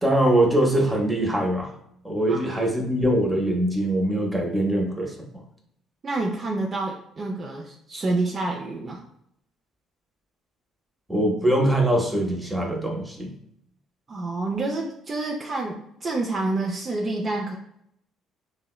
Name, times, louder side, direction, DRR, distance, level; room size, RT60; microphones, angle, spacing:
voice 1, 0.0-1.7 2.0-5.4 11.1-13.3, right 1 dB, 10° right, 1 dB, 0.7 m, -22 dB
voice 2, 6.0-9.0 14.1-17.6, right 2 dB, 40° right, -1 dB, 0.4 m, -28 dB
2.7 x 2.1 x 2.3 m, 0.73 s
hypercardioid pair, 60°, 0 cm